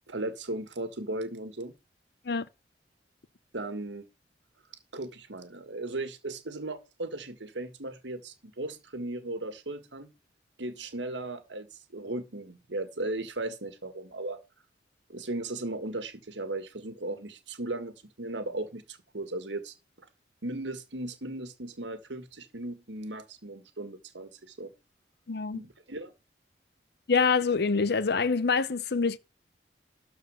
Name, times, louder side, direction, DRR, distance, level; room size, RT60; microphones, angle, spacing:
voice 1, 0.1-1.7 3.5-4.1 4.9-10.1 10.6-14.4 15.1-19.7 20.4-24.7 25.5-26.1, right 2 dB, 80° right, 1.8 m, -37 dB
voice 2, 25.3-25.6 27.1-29.2, left 5 dB, 60° left, 0.7 m, -25 dB
13.0 x 4.5 x 6.4 m
head